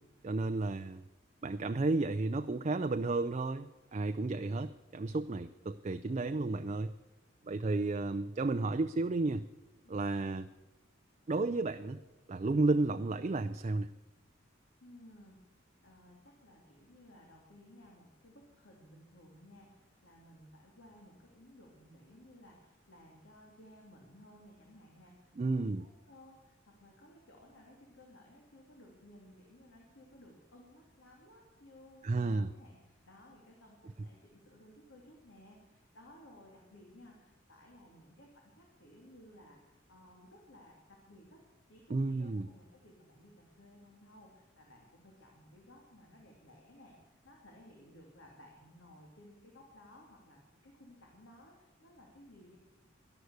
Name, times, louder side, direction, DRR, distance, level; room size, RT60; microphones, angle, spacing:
voice 1, 0.2-1.0 1.4-6.9 7.4-9.5 9.9-10.5 11.3-12.0 12.3-13.9 25.4-25.8 32.0-32.5 41.9-42.5, right 3 dB, 35° right, 9 dB, 0.4 m, -32 dB
voice 2, 14.8-15.4 15.8-41.4 41.7-52.6, left 1 dB, 80° left, -1 dB, 2.6 m, -58 dB
12.0 x 11.0 x 8.0 m, 1.1 s
head